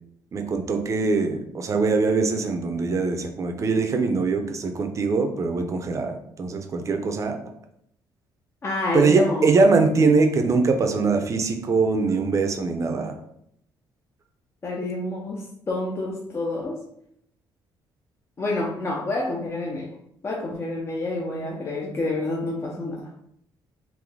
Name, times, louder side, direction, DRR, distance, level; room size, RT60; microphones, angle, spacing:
voice 1, 0.3-7.3 8.9-13.2, right 4 dB, 40° right, 5 dB, 0.6 m, -22 dB
voice 2, 8.6-9.5 14.6-16.8 18.4-19.9 20.2-23.0, left 2 dB, 30° left, -2 dB, 0.7 m, -28 dB
3.9 x 2.6 x 3.4 m, 0.71 s
cardioid pair, 110°, 8 cm